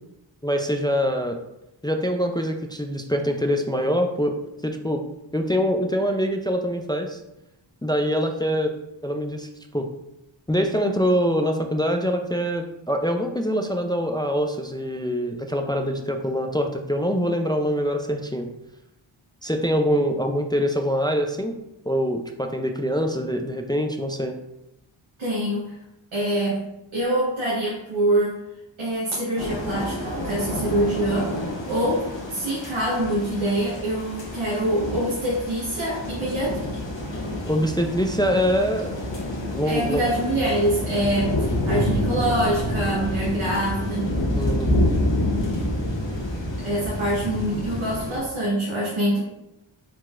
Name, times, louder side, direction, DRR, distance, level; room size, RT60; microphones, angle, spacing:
voice 1, 0.4-1.4 1.8-4.4 4.6-5.0 5.3-7.2 7.8-8.7 9.0-9.9 10.5-18.5 19.4-21.5 21.9-24.4 37.5-40.0 41.4-41.5 44.4-44.7, equal, 10° left, 4 dB, 0.3 m, -24 dB
voice 2, 25.2-25.8 26.1-26.7 26.9-28.4 28.8-36.8 39.6-44.2 46.6-49.2, right 1 dB, 80° right, -5 dB, 1.1 m, -25 dB
sound 1, 29.4-48.2, left 1 dB, 65° left, 1.3 m, -28 dB
4.5 x 4.0 x 2.4 m, 0.89 s
wide cardioid pair, 60°, 47 cm